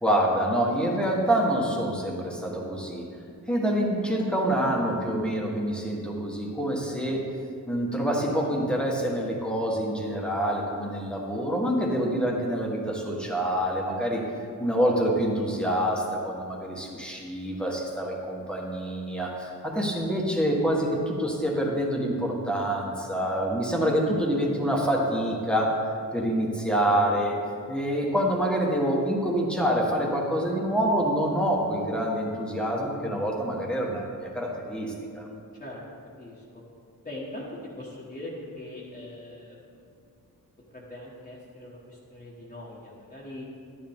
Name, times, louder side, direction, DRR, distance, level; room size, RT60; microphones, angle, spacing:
voice 1, 0.0-3.1 3.5-7.2 7.7-14.2 14.6-25.7 26.1-27.3 27.7-35.3, equal, 5° left, -2 dB, 1.4 m, -26 dB
voice 2, 36.2-36.6 37.0-37.5 37.8-39.6 40.7-43.5, left 1 dB, 25° left, -7 dB, 1.4 m, -41 dB
11.5 x 10.5 x 3.6 m, 2.4 s
wide cardioid pair, 145°, 35 cm